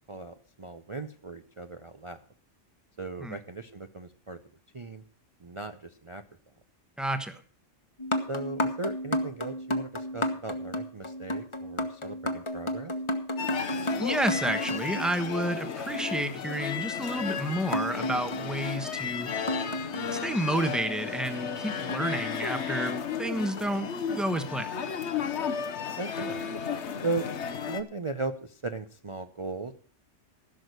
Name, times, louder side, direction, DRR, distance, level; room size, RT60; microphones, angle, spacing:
voice 1, 0.1-2.2 3.0-4.4 4.7-5.0 5.4-6.2 8.3-12.9 26.0-26.4 27.0-27.3 27.7-29.7, right 3 dB, 35° right, 7 dB, 0.6 m, -37 dB
voice 2, 7.0-7.4 13.9-19.3 20.1-24.7, right 1 dB, ahead, 9 dB, 1.0 m, -30 dB
sound 1, 8.0-15.7 17.7-20.7 21.9-22.9 23.6-23.8 24.4-24.5, left 1 dB, 25° left, 1.2 m, -33 dB
sound 2, 13.4-27.8, left 6 dB, 65° left, 1.2 m, -34 dB
15.5 x 6.4 x 6.6 m, 0.44 s
omnidirectional pair, 1.3 m